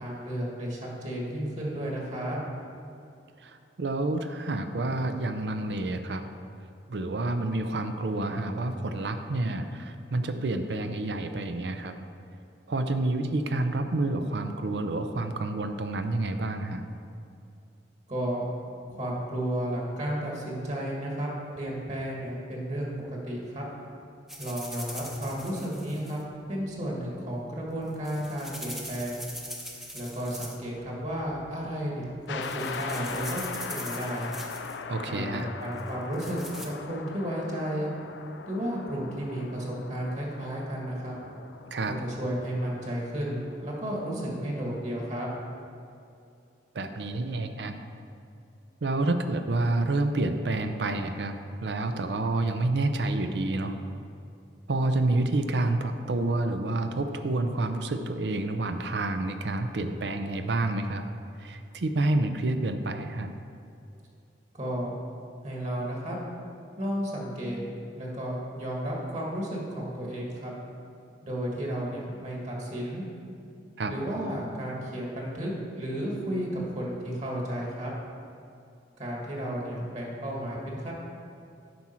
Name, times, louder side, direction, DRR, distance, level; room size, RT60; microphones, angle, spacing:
voice 1, 0.0-2.4 18.1-18.5 18.9-21.3 21.5-23.6 24.4-26.2 26.5-29.2 29.9-34.3 35.1-37.9 38.5-41.1 41.9-45.3 64.5-65.0 65.4-66.2 66.8-67.6 68.0-70.5 71.2-73.0 73.9-77.9 79.0-80.9, equal, 40° right, -2 dB, 1.7 m, -33 dB
voice 2, 3.4-6.2 6.9-11.9 12.7-16.8 34.9-35.5 41.7-42.0 46.7-47.7 48.8-51.3 51.6-53.7 54.7-61.0 61.4-63.3 73.8-73.9, right 2 dB, 75° right, 7 dB, 0.6 m, -28 dB
sound 1, 24.3-26.2 27.7-30.8 31.0-31.5 32.0-32.1 32.4-34.8 35.8-36.7, equal, ahead, 0.8 m, -42 dB
sound 2, 32.3-44.8, left 5 dB, 85° left, 0.4 m, -41 dB
9.5 x 6.1 x 4.4 m, 2.5 s
head